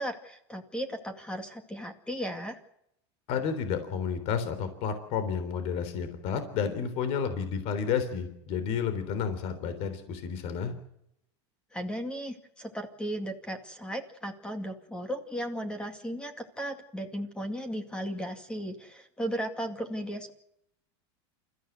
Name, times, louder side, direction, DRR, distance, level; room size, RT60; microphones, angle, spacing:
voice 1, 0.0-2.6 11.7-20.3, equal, 5° left, 7 dB, 2.2 m, -36 dB
voice 2, 3.3-10.7, left 6 dB, 45° left, 10 dB, 3.6 m, -31 dB
29.0 x 14.5 x 8.0 m, 0.78 s
supercardioid pair, 150°, 14 cm